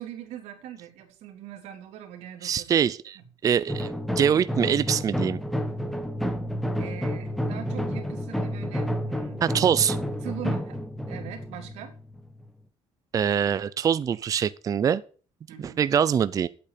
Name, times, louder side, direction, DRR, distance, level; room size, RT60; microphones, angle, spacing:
voice 1, 0.0-2.7 3.1-3.2 6.8-9.4 10.2-11.9 15.5-15.8, right 11 dB, 80° right, 3.0 m, -41 dB
voice 2, 2.4-5.4 9.4-10.0 13.1-15.0 15.6-16.5, right 8 dB, 30° right, 0.5 m, -24 dB
sound 1, 3.7-12.5, equal, ahead, 1.3 m, -30 dB
8.6 x 8.5 x 8.3 m
cardioid pair, 140°, 11 cm